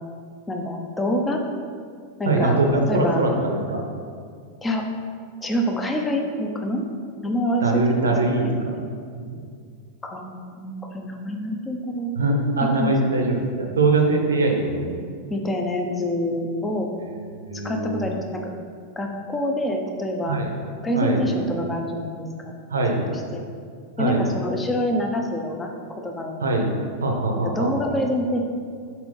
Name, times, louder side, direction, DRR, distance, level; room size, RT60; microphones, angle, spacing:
voice 1, 0.5-1.4 2.2-2.6 2.9-3.2 4.6-4.8 5.4-6.8 7.2-8.1 10.0-12.1 12.6-12.9 15.3-16.9 17.5-18.5 19.0-20.4 20.8-22.5 22.8-22.9 23.3-23.4 24.0-25.7 26.0-26.4 27.4-28.4, equal, 15° left, 2 dB, 0.7 m, -26 dB
voice 2, 2.3-3.8 7.6-8.7 9.1-9.4 12.2-15.1 17.3-18.0 20.3-20.5 20.9-21.2 22.7-23.0 24.0-24.2 26.4-26.7 27.0-27.7, right 2 dB, 70° right, 2 dB, 0.8 m, -22 dB
4.3 x 4.2 x 5.4 m, 2.1 s
figure-of-eight pair, 90°, 0 cm